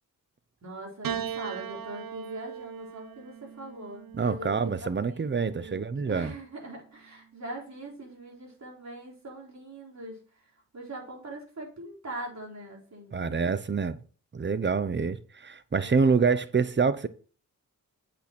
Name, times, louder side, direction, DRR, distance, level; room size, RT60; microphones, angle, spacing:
voice 1, 0.6-5.8 6.1-10.2 10.7-13.4 15.8-16.4, right 1 dB, 50° right, 4.0 m, -42 dB
Piano, 1.0-5.5 6.6-7.3, right 8 dB, 70° right, 0.8 m, -39 dB
voice 2, 4.1-6.3 13.1-14.0 14.3-17.1, right 5 dB, 30° right, 0.8 m, -26 dB
8.2 x 5.9 x 4.4 m
cardioid pair, 60°, 35 cm